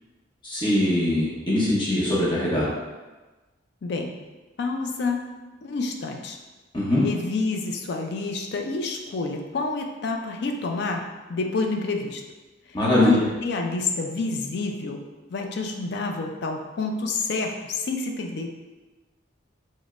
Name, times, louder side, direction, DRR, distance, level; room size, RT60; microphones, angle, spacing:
voice 1, 0.4-2.7 6.7-7.0 12.7-13.2, left 1 dB, 25° left, -7 dB, 0.9 m, -22 dB
voice 2, 3.8-4.1 4.6-5.2 5.6-6.4 7.0-12.2 12.7-15.0 15.3-18.5, left 3 dB, 55° left, 3 dB, 0.4 m, -28 dB
5.1 x 2.1 x 2.4 m, 1.2 s
head